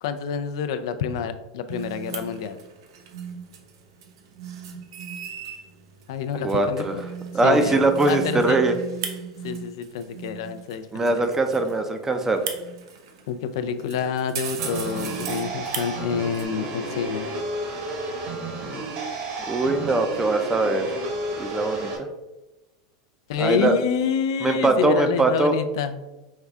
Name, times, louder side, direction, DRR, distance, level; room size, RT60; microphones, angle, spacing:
voice 1, 0.0-2.6 6.1-6.9 7.4-8.6 9.4-11.3 13.3-17.3 23.3-26.0, left 7 dB, 70° left, 10 dB, 0.4 m, -28 dB
sound 1, 1.7-16.4, right 7 dB, 75° right, 0.6 m, -37 dB
voice 2, 6.4-7.0 7.3-8.7 10.9-12.4 19.5-20.9 21.4-21.9 23.4-23.8 24.4-25.5, right 2 dB, 15° right, 7 dB, 0.5 m, -21 dB
sound 2, 14.6-22.0, right 2 dB, 55° right, 1.3 m, -32 dB
5.3 x 2.3 x 3.5 m, 1.0 s
hypercardioid pair, 110°, 3 cm